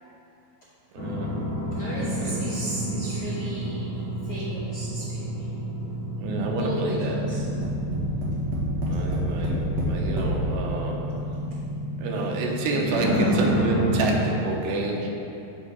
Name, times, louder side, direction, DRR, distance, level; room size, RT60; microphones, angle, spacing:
voice 1, 0.9-1.3 2.3-2.4 6.2-7.2 8.8-11.0 12.0-15.1, right 3 dB, 90° right, -1 dB, 2.9 m, -29 dB
sound 1, 1.0-14.2, equal, 55° left, 1.0 m, -29 dB
voice 2, 1.7-5.6 6.6-7.5, equal, 75° left, -7 dB, 1.3 m, -36 dB
Tap, 7.3-10.4 11.2-11.3 11.6-11.7, right 1 dB, 55° right, 2.4 m, -29 dB
15.0 x 5.5 x 3.4 m, 2.9 s
omnidirectional pair, 4.2 m